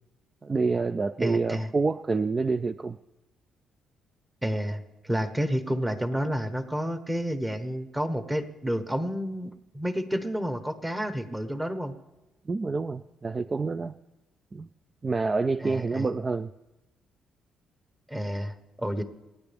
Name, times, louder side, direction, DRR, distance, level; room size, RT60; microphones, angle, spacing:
voice 1, 0.4-3.0 12.5-14.0 14.5-14.7 15.0-16.5, right 4 dB, 30° right, 12 dB, 0.3 m, -27 dB
voice 2, 1.2-1.7 4.4-12.0 15.6-16.1 18.1-19.0, equal, 10° right, 9 dB, 1.2 m, -30 dB
27.5 x 9.5 x 3.5 m, 1.0 s
cardioid pair, 90°, 0 cm